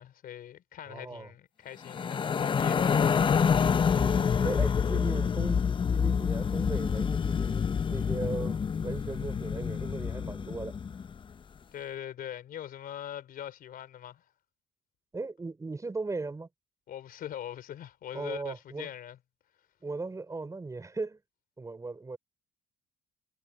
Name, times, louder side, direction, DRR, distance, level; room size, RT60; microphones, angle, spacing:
voice 1, 0.0-3.2 11.7-14.3 16.9-19.2, left 10 dB, 60° left, 4.2 m, -42 dB
voice 2, 0.9-1.3 3.9-5.6 5.9-10.8 15.1-16.5 18.1-18.9 19.8-21.2 21.6-22.2, right 3 dB, 20° right, 4.2 m, -37 dB
sound 1, 1.8-11.1, left 6 dB, 30° left, 0.6 m, -27 dB
cardioid pair, 110°, 17 cm